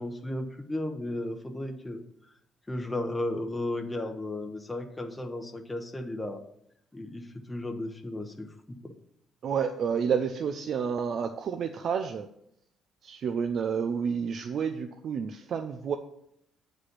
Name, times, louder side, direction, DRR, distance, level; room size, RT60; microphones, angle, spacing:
voice 1, 0.0-2.0 2.7-6.4 6.9-8.9, left 1 dB, 10° left, 4 dB, 0.8 m, -34 dB
voice 2, 9.4-12.3 13.0-16.0, right 6 dB, 55° right, 7 dB, 0.5 m, -30 dB
8.3 x 5.2 x 6.0 m, 0.75 s
cardioid pair, 120°, 0 cm